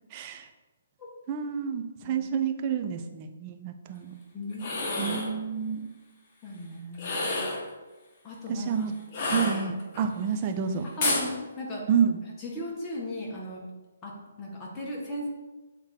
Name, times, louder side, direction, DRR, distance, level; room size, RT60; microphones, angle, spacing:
voice 1, 0.1-0.5 1.3-4.1 5.0-5.9 8.5-8.9 9.3-10.9 11.9-12.2, right 7 dB, 30° right, 7 dB, 0.6 m, -29 dB
voice 2, 4.3-5.2 6.4-7.6 8.2-8.9 9.3-9.5 11.0-11.9 12.4-13.6 14.0-15.3, left 1 dB, 20° left, -4 dB, 1.7 m, -37 dB
sound 1, 4.5-5.3 6.9-7.7 9.1-10.0 11.0-11.3, left 2 dB, 35° left, 1.4 m, -29 dB
7.5 x 3.6 x 4.5 m, 1.2 s
hypercardioid pair, 145°, 0 cm